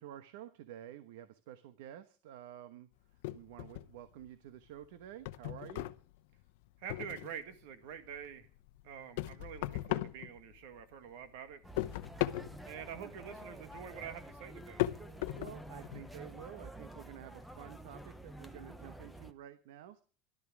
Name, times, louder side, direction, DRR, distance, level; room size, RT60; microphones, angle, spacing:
voice 1, 0.0-2.9 3.3-5.9 13.0-13.1 15.3-20.0, right 11 dB, 80° right, 13 dB, 1.0 m, -50 dB
sound 1, 3.2-4.3 4.6-7.5 7.9-10.9 11.2-16.2, left 17 dB, 70° left, 0.8 m, -39 dB
voice 2, 6.8-8.5 8.8-11.6 12.7-14.9, right 8 dB, 65° right, 11 dB, 1.8 m, -46 dB
sound 2, 11.6-19.3, right 1 dB, ahead, 0.7 m, -50 dB
14.0 x 12.0 x 6.1 m, 0.39 s
cardioid pair, 175°, 0 cm